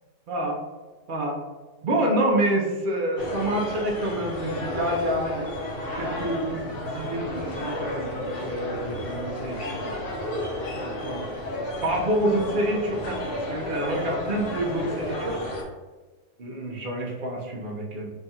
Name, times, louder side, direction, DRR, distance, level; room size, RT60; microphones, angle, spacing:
voice 1, 0.3-0.6 1.1-1.4 1.8-10.0 10.8-11.3 11.8-15.4 16.4-18.1, right 1 dB, 50° right, -1 dB, 0.6 m, -28 dB
sound 1, 3.2-15.6, left 1 dB, 50° left, 0.8 m, -32 dB
3.5 x 2.3 x 4.1 m, 1.3 s
omnidirectional pair, 1.7 m